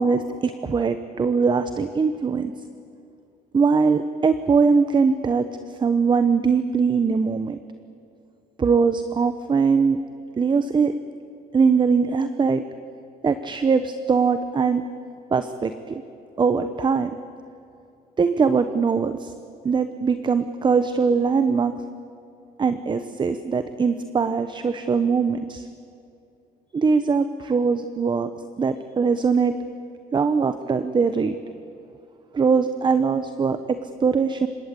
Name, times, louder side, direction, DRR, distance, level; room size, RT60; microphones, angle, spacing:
voice 1, 0.0-2.5 3.5-5.5 5.8-7.6 8.6-10.0 10.4-10.9 11.5-12.6 13.2-14.8 15.3-16.0 16.4-17.1 18.2-19.3 19.6-21.7 22.6-25.7 26.7-28.3 28.6-29.5 30.1-31.4 32.3-34.5, right 5 dB, 25° right, 10 dB, 1.0 m, -21 dB
29.5 x 17.5 x 8.4 m, 2.6 s
cardioid pair, 110°, 17 cm